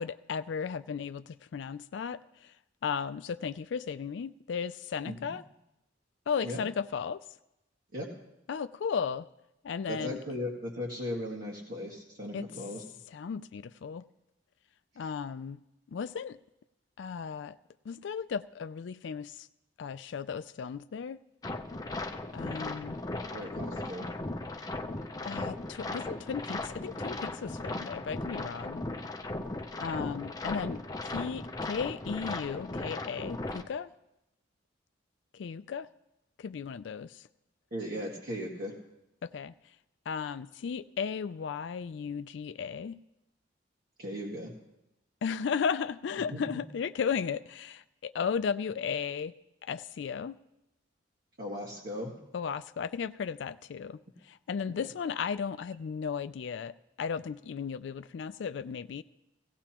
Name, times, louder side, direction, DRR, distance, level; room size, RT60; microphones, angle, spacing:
voice 1, 0.0-2.5 2.8-5.4 6.3-7.2 8.5-9.3 9.6-10.2 12.3-12.5 13.1-14.0 15.0-15.6 15.9-16.4 17.0-17.6 17.9-19.5 19.8-21.2 22.3-23.0 25.2-28.8 29.8-33.9 35.3-35.9 36.4-37.2 39.2-39.5 40.1-43.0 45.2-49.3 49.6-50.4 52.3-54.0 54.2-56.7 57.0-59.0, left 6 dB, 65° left, 13 dB, 0.4 m, -35 dB
voice 2, 9.9-12.8 23.2-24.1 37.7-38.7 44.0-44.5 46.3-46.5 51.4-52.1 54.7-54.8, left 1 dB, 50° right, -5 dB, 1.9 m, -37 dB
sound 1, 21.4-33.6, left 2 dB, 20° left, 0.6 m, -37 dB
17.0 x 16.5 x 3.0 m, 0.89 s
head